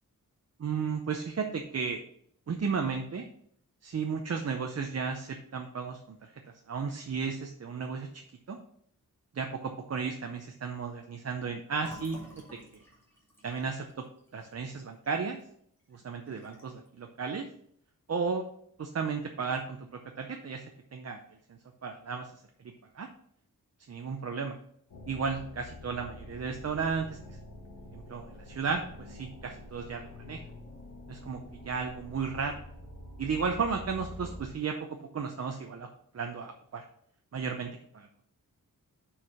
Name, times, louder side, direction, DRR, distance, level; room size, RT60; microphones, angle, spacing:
voice 1, 0.6-2.0 2.5-3.3 3.8-6.0 6.7-8.2 8.5-8.6 9.3-12.2 13.4-13.9 14.3-15.4 15.9-17.4 18.1-18.4 18.8-19.8 20.2-21.2 21.8-22.3 22.9-23.1 23.9-24.6 25.1-27.4 27.9-30.4 31.1-31.4 31.6-32.6 33.2-34.8 35.1-35.9 36.1-36.8 37.3-37.7 37.9-38.1, right 5 dB, 45° right, 4 dB, 0.6 m, -34 dB
Fill (with liquid), 11.8-15.5 15.8-15.9 16.3-16.9, left 1 dB, 5° left, 2.2 m, -52 dB
sound 1, 24.9-34.5, left 1 dB, 65° left, 2.1 m, -46 dB
6.2 x 4.8 x 5.7 m, 0.67 s
wide cardioid pair, 155°, 34 cm